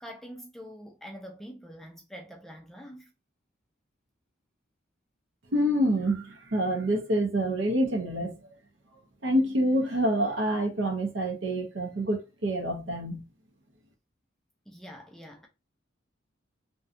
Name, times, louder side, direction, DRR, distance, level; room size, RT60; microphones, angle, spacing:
voice 1, 0.0-3.1 14.7-15.5, equal, ahead, 0.3 m, -45 dB
voice 2, 5.5-8.5 9.2-13.3, equal, 65° right, 0.7 m, -27 dB
2.6 x 2.2 x 2.5 m
head